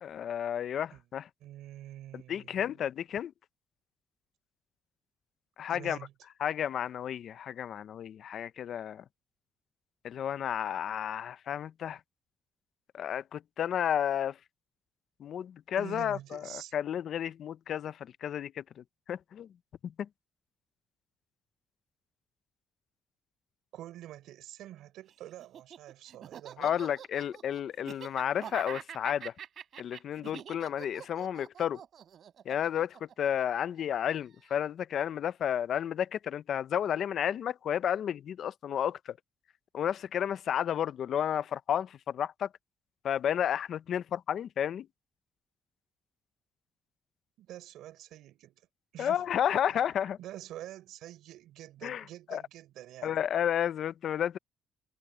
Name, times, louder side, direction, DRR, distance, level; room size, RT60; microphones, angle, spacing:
voice 1, 0.0-1.3 2.1-3.3 5.6-6.0 6.4-9.0 10.0-12.0 12.9-14.3 15.2-16.4 16.7-18.6 19.1-19.5 19.8-20.1 26.6-29.3 29.8-31.8 32.5-39.1 39.7-42.5 43.0-44.9 49.0-50.2 51.8-52.0 52.3-52.4 53.0-54.4, left 9 dB, 60° left, 0.6 m, -32 dB
voice 2, 1.4-2.8 5.7-6.1 15.8-16.8 23.7-26.8 47.4-48.6 48.9-49.3 49.7-49.8 50.2-53.2, right 13 dB, 85° right, 4.9 m, -47 dB
Laughter, 25.4-33.8, right 9 dB, 55° right, 3.7 m, -45 dB
cardioid pair, 125°, 0 cm